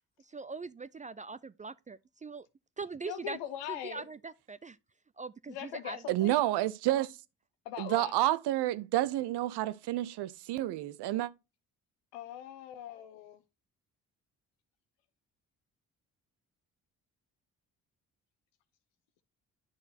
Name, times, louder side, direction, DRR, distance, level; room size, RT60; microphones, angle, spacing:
voice 1, 0.3-2.5 2.8-3.4 3.7-4.8 5.2-6.0, right 4 dB, 20° right, 0.3 m, -42 dB
voice 2, 3.0-4.1 5.5-6.3 7.6-8.1 12.1-13.4, left 10 dB, 75° left, 1.1 m, -41 dB
voice 3, 6.1-7.2 7.8-11.3, right 15 dB, 65° right, 0.7 m, -29 dB
9.7 x 6.1 x 2.8 m
hypercardioid pair, 45°, 43 cm